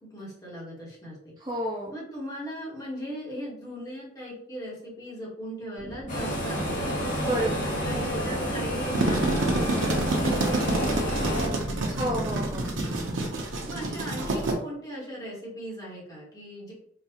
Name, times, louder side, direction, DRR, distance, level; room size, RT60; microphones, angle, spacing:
voice 1, 0.0-1.3 1.9-7.0 7.8-11.6 11.8-12.1 13.7-16.7, equal, 20° left, -6 dB, 1.2 m, -39 dB
voice 2, 1.4-1.9 7.2-7.8 11.9-12.8, equal, 20° right, -2 dB, 0.4 m, -30 dB
sound 1, 5.8-13.2, equal, 80° left, 1.2 m, -41 dB
sound 2, 6.1-11.5, equal, 40° left, 1.0 m, -29 dB
sound 3, 8.9-14.5, right 2 dB, 90° right, 0.8 m, -28 dB
3.9 x 2.4 x 2.9 m, 0.68 s
head